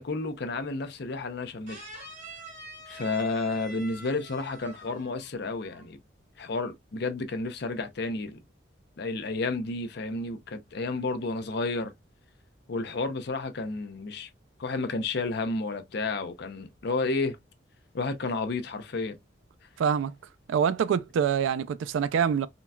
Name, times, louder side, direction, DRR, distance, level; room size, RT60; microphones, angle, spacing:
voice 1, 0.0-1.8 2.9-6.0 6.4-8.4 9.0-11.9 12.7-14.3 14.6-17.4 17.9-19.2, left 3 dB, 60° left, 0.6 m, -31 dB
sound 1, 1.7-5.3 5.6-5.9, right 1 dB, 40° right, 1.1 m, -45 dB
voice 2, 19.8-20.1 20.5-22.5, right 7 dB, 85° right, 0.3 m, -25 dB
3.8 x 2.2 x 2.3 m
head